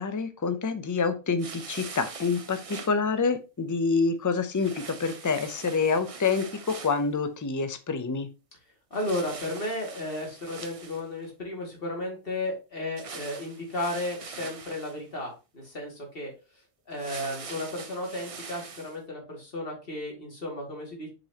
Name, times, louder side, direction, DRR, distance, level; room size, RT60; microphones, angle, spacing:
voice 1, 0.0-8.3, left 4 dB, 25° left, 10 dB, 0.4 m, -27 dB
sound 1, 1.4-2.9 4.6-7.1 8.9-11.3 13.0-15.0 16.9-19.0, right 5 dB, 40° right, 0.5 m, -43 dB
voice 2, 8.9-16.3 16.9-21.1, left 1 dB, 40° left, -1 dB, 2.6 m, -34 dB
7.4 x 5.3 x 2.9 m, 0.30 s
omnidirectional pair, 1.4 m